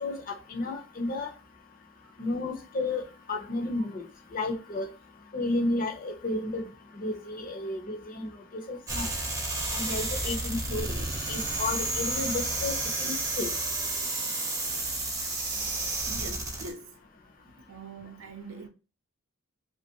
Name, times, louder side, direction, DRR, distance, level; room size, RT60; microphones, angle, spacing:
voice 1, 0.0-1.3 2.2-3.0 3.3-4.0 4.3-4.9 5.3-6.6 6.9-8.3 8.7-9.1 9.7-11.0 11.3-13.5, left 2 dB, 40° left, 0.7 m, -32 dB
sound 1, 8.9-16.7, right 2 dB, 15° right, 0.6 m, -31 dB
voice 2, 16.1-17.0 17.4-18.7, right 3 dB, 60° right, 0.5 m, -44 dB
3.1 x 2.5 x 2.8 m
head